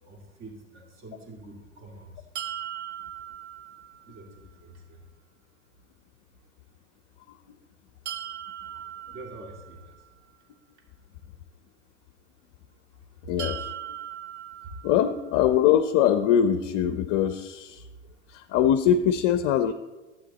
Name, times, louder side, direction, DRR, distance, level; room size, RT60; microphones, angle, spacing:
voice 1, 0.0-2.1 4.1-4.3 4.6-5.0 9.1-10.0, right 2 dB, 35° right, 1 dB, 2.3 m, -45 dB
sound 1, 2.4-4.3 8.1-10.1 13.4-15.4, right 10 dB, 70° right, 0.7 m, -39 dB
voice 2, 13.3-13.7 14.8-17.8 18.3-19.7, left 9 dB, 45° left, 9 dB, 0.6 m, -22 dB
11.5 x 8.5 x 4.1 m, 1.2 s
hypercardioid pair, 100°, 36 cm